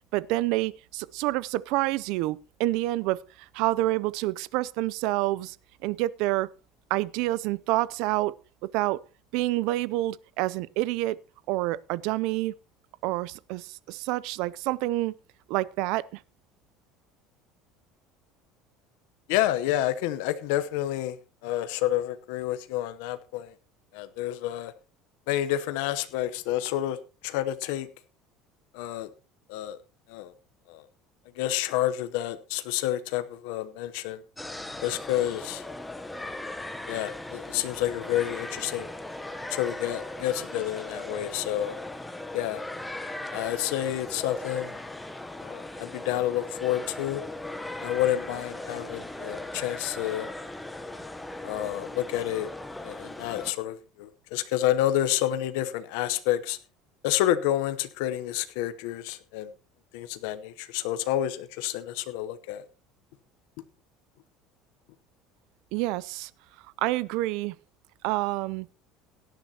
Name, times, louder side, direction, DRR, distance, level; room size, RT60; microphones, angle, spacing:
voice 1, 0.1-5.6 5.8-6.5 6.9-8.3 8.6-9.0 9.3-11.2 11.5-12.5 13.0-15.1 15.5-16.2 65.7-66.3 66.8-67.6 68.0-68.7, right 18 dB, 65° right, 0.5 m, -28 dB
voice 2, 19.3-21.2 21.4-23.5 23.9-24.7 25.3-27.0 27.2-27.9 28.7-29.1 29.5-29.8 30.1-30.3 30.7-30.8 31.4-34.2 34.8-35.6 36.1-36.3 36.9-38.9 39.5-41.8 42.3-42.6 43.3-44.7 45.4-47.2 47.8-50.3 51.4-52.5 52.8-56.6 57.0-59.5 59.9-62.7, left 13 dB, 80° left, 0.8 m, -29 dB
sound 1, 34.4-53.5, left 2 dB, 5° left, 0.9 m, -38 dB
17.5 x 10.5 x 2.9 m
cardioid pair, 165°, 0 cm